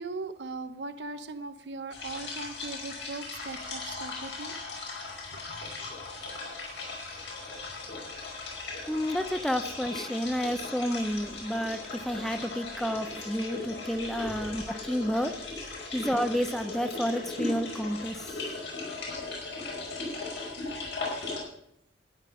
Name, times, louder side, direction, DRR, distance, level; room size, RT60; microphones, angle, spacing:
voice 1, 0.0-4.6 5.3-5.4 5.8-5.9, right 3 dB, 75° right, 10 dB, 0.9 m, -39 dB
sound 1, 1.9-21.4, left 3 dB, 80° left, 5.2 m, -38 dB
voice 2, 8.9-18.4, equal, ahead, 10 dB, 0.6 m, -31 dB
13.5 x 9.9 x 5.5 m, 0.75 s
head